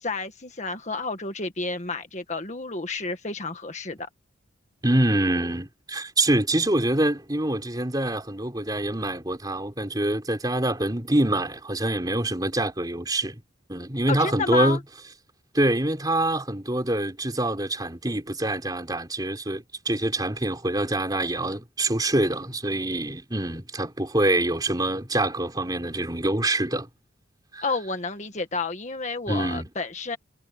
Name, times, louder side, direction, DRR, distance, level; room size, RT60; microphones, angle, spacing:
voice 1, 0.0-4.1 14.1-14.8 27.6-30.2, left 3 dB, 35° left, 1.7 m, -30 dB
voice 2, 4.8-13.4 13.7-14.8 15.5-26.9 27.5-27.6 29.3-29.7, right 1 dB, 20° right, 4.0 m, -25 dB
head